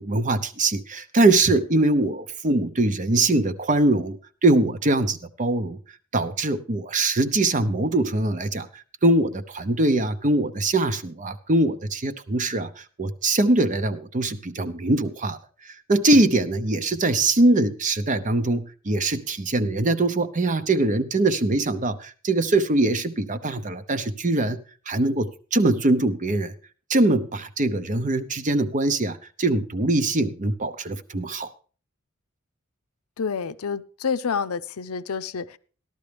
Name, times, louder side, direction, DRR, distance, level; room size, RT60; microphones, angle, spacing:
voice 1, 0.0-5.8 6.1-8.7 9.0-15.4 15.9-24.6 24.9-26.5 26.9-31.5, right 2 dB, 35° right, 12 dB, 0.8 m, -22 dB
voice 2, 33.2-35.6, left 5 dB, 90° left, 13 dB, 0.6 m, -28 dB
14.5 x 12.0 x 3.4 m, 0.40 s
head